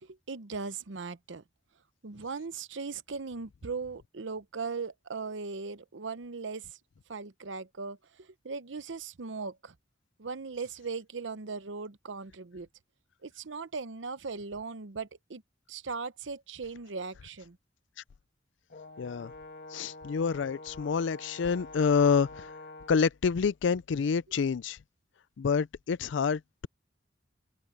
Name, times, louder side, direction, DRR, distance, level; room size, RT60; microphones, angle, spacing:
voice 1, 0.0-1.4 2.0-6.8 7.1-9.7 10.2-12.7 13.2-15.4 15.7-17.6, right 4 dB, 85° right, 0.8 m, -38 dB
Brass instrument, 18.7-23.1, left 2 dB, 55° left, 1.8 m, -47 dB
voice 2, 19.0-19.3 19.7-22.5 22.9-24.8 25.4-26.7, left 6 dB, 75° left, 0.4 m, -27 dB
head